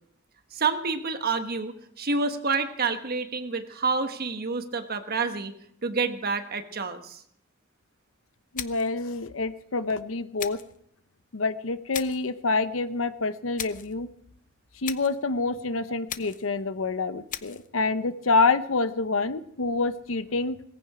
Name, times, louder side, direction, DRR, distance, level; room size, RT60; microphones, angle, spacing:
voice 1, 0.5-5.5 5.8-7.2, right 4 dB, 50° right, 7 dB, 1.3 m, -28 dB
voice 2, 8.5-10.6 11.3-14.1 14.8-20.6, left 3 dB, 75° left, 13 dB, 0.8 m, -27 dB
sound 1, 8.6-9.0 10.4-10.8 11.9-12.3 13.6-13.9 14.8-15.2 16.1-16.5 17.3-17.7, left 10 dB, 40° left, 0.7 m, -37 dB
18.0 x 15.5 x 4.9 m, 0.71 s
head